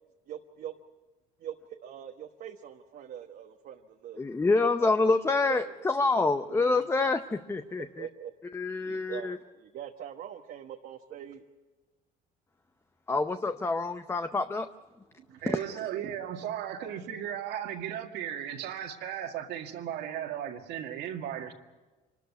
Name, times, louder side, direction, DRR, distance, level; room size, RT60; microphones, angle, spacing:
voice 1, 0.3-0.7 1.4-4.2 4.8-5.8 6.5-6.8 7.7-8.3 8.9-11.4 15.2-15.4, right 10 dB, 60° right, 3 dB, 1.2 m, -43 dB
voice 2, 4.2-8.1 8.5-9.4 13.1-14.7 15.5-15.6, left 3 dB, 15° left, 9 dB, 0.7 m, -27 dB
voice 3, 15.3-21.5, right 10 dB, 80° right, 4 dB, 2.0 m, -36 dB
25.5 x 13.0 x 9.4 m, 1.2 s
cardioid pair, 110°, 17 cm